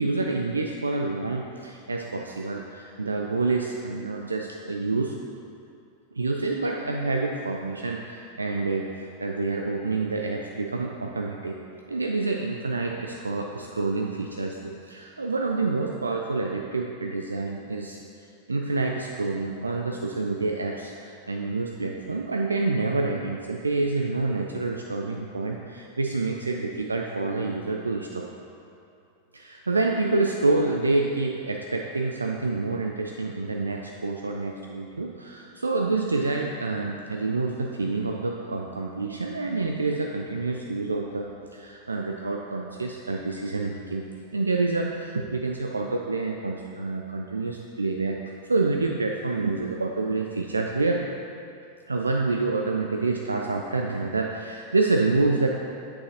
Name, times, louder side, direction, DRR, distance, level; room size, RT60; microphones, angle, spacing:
voice 1, 0.0-5.1 6.1-11.6 11.9-28.3 29.3-44.1 44.3-48.2 48.5-51.1 51.9-55.5, right 3 dB, 80° right, 1 dB, 0.3 m, -27 dB
8.0 x 6.3 x 2.9 m, 2.6 s
figure-of-eight pair, 90°, 0 cm